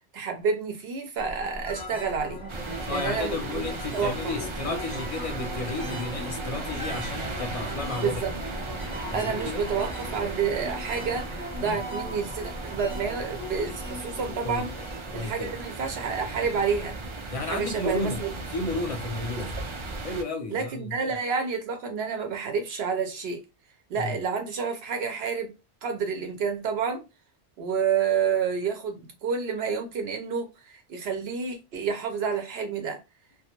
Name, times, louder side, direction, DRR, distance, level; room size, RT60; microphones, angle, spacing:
voice 1, 0.1-2.4 2.9-3.6 3.9-4.3 8.0-8.3 9.1-14.7 15.1-17.0 17.5-18.3 20.5-23.4 23.9-25.5 25.8-27.0 27.6-33.0, right 6 dB, 80° right, 0.9 m, -29 dB
sound 1, 1.2-15.2, equal, 5° right, 0.7 m, -38 dB
sound 2, 2.5-20.2, right 3 dB, 55° right, 0.3 m, -37 dB
voice 2, 2.9-8.5 9.1-9.7 14.4-14.7 15.1-15.5 17.3-19.5 20.0-21.2 24.0-24.2, left 3 dB, 45° left, 0.5 m, -33 dB
2.2 x 2.0 x 2.9 m
omnidirectional pair, 1.0 m